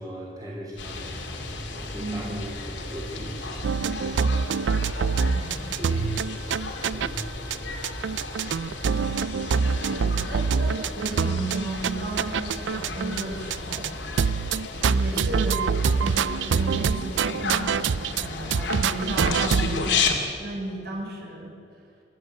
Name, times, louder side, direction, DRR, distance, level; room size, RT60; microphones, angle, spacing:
voice 1, 0.0-4.0 5.5-6.1 6.8-7.6, right 1 dB, 20° right, -4 dB, 3.3 m, -38 dB
sound 1, 0.8-20.1, left 4 dB, 85° left, 2.6 m, -33 dB
voice 2, 1.9-2.4 5.2-5.7 9.9-13.9 14.7-20.1 20.4-21.5, right 1 dB, 60° right, -1 dB, 5.8 m, -34 dB
sound 2, 3.6-7.2 7.5-7.6 7.8-13.2 13.5-13.9 14.2-18.3 18.5-19.8, right 6 dB, 80° right, 0.4 m, -25 dB
29.5 x 11.0 x 8.1 m, 2.4 s
head